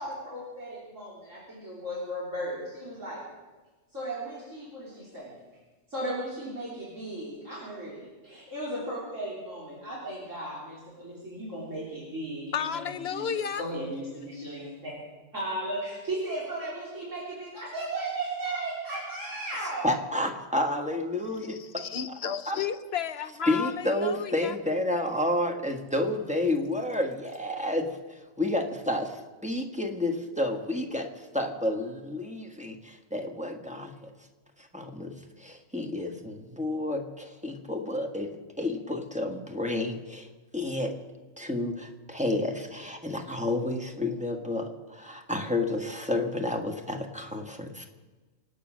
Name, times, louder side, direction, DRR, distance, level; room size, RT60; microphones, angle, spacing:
voice 1, 0.0-3.2 3.9-5.4 5.9-14.9 15.3-19.9, right 1 dB, 70° right, 4.0 m, -36 dB
voice 2, 12.5-13.6 21.5-24.5, left 8 dB, 55° left, 1.0 m, -33 dB
voice 3, 19.8-21.6 22.5-22.6 23.5-34.1 34.6-40.3 40.5-40.9 41.4-47.9, left 1 dB, 5° right, 1.5 m, -30 dB
25.5 x 8.8 x 6.3 m
omnidirectional pair, 1.4 m